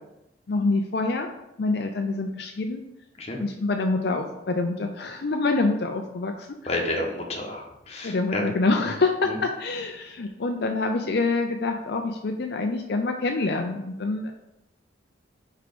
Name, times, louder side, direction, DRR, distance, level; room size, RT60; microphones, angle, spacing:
voice 1, 0.5-1.3 1.6-2.8 3.4-6.5 8.0-14.3, left 3 dB, 55° left, 3 dB, 0.5 m, -26 dB
voice 2, 6.7-8.4 9.3-9.4, left 2 dB, 35° left, 0 dB, 1.1 m, -30 dB
5.0 x 4.6 x 5.2 m, 0.88 s
head